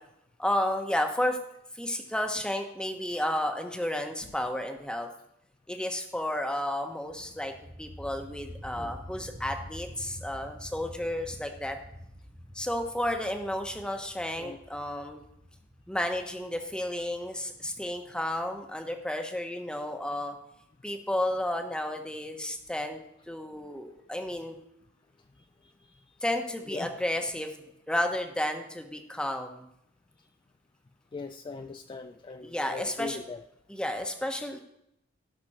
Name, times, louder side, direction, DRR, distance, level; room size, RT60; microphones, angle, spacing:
voice 1, 0.4-1.4 1.7-5.1 5.7-7.5 7.8-11.8 12.5-15.2 15.9-20.4 20.8-23.0 23.3-24.6 26.2-27.6 27.9-29.7 32.4-33.2 33.7-34.6, left 1 dB, 5° left, 4 dB, 1.1 m, -32 dB
sound 1, 7.1-18.6, equal, 20° right, 1.3 m, -47 dB
voice 2, 25.4-26.1 26.7-26.9 31.1-33.4, left 4 dB, 25° left, 8 dB, 0.3 m, -41 dB
17.0 x 5.9 x 4.3 m, 0.78 s
head